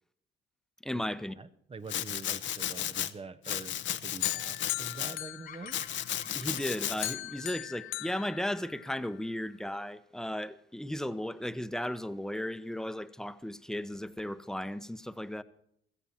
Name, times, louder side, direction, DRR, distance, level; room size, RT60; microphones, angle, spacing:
voice 1, 0.8-1.4 6.2-15.4, left 1 dB, 5° left, 0.9 m, -35 dB
voice 2, 1.4-3.7 4.0-5.8, right 4 dB, 30° right, 0.8 m, -45 dB
Domestic sounds home sounds, 1.9-3.1 3.4-5.2 5.7-7.1, left 11 dB, 70° left, 0.9 m, -34 dB
sound 1, 4.2-6.2 6.6-9.1, left 17 dB, 85° left, 0.5 m, -39 dB
Bird vocalization bird call bird song, 5.4-9.7, left 6 dB, 45° left, 1.6 m, -53 dB
16.5 x 14.5 x 4.4 m
cardioid pair, 90°, 20 cm